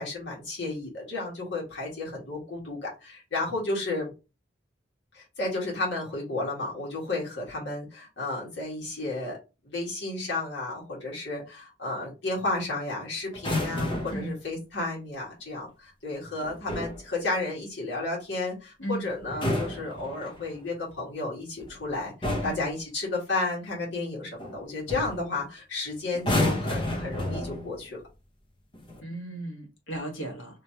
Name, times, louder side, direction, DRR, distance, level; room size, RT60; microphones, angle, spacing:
voice 1, 0.0-4.1 5.1-9.4 9.6-28.0, left 2 dB, 70° left, 1.8 m, -32 dB
sound 1, 13.3-14.3 16.4-17.0 19.2-20.6 21.6-21.8 22.2-22.7 24.4-24.6 24.9-25.2 26.1-27.8 28.7-29.0, left 1 dB, 25° left, 0.9 m, -30 dB
voice 2, 29.0-30.6, right 1 dB, 90° left, 1.4 m, -35 dB
3.1 x 3.0 x 2.8 m
head